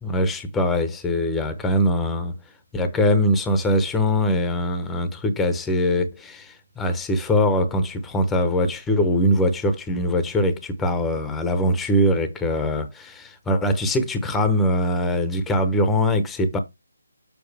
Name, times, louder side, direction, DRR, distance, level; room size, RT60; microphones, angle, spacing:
voice 1, 0.0-2.3 2.7-16.6, left 1 dB, 5° left, 0.8 m, -22 dB
7.0 x 5.9 x 3.4 m
hypercardioid pair, 165°, 0 cm